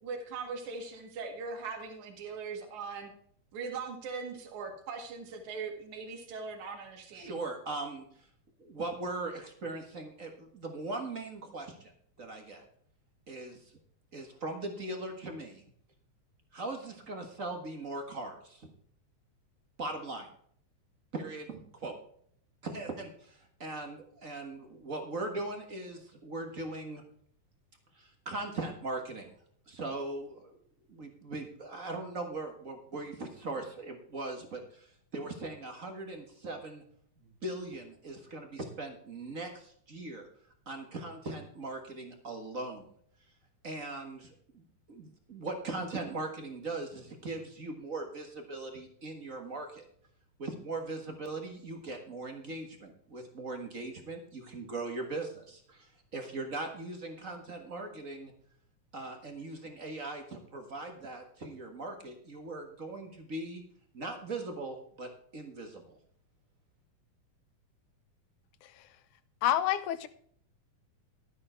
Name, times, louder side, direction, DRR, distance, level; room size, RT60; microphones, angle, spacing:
voice 1, 0.0-3.1 3.5-7.3, right 4 dB, 70° right, 3.2 m, -40 dB
voice 2, 7.1-8.0 8.6-11.9 12.2-12.7 13.3-13.6 14.1-15.6 16.5-18.7 19.8-20.3 21.1-22.0 22.6-27.0 27.9-29.3 29.7-30.6 30.9-34.9 35.1-36.8 37.4-40.3 40.6-42.8 43.6-49.9 50.4-58.3 58.9-63.6 63.9-65.9, right 2 dB, 40° right, 1.1 m, -40 dB
voice 3, 69.4-70.1, left 12 dB, 80° left, 2.2 m, -27 dB
12.5 x 9.5 x 4.5 m
omnidirectional pair, 3.6 m